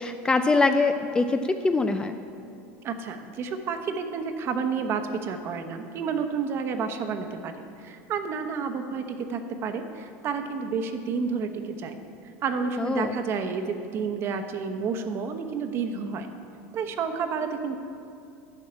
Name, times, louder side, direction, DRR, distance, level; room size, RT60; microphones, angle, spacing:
voice 1, 0.0-2.2 12.8-13.1, left 3 dB, 10° left, 8 dB, 0.4 m, -23 dB
voice 2, 2.8-12.0 12.4-16.3 16.7-17.8, right 5 dB, 35° right, 7 dB, 1.0 m, -30 dB
11.5 x 6.4 x 8.6 m, 2.5 s
supercardioid pair, 145°, 7 cm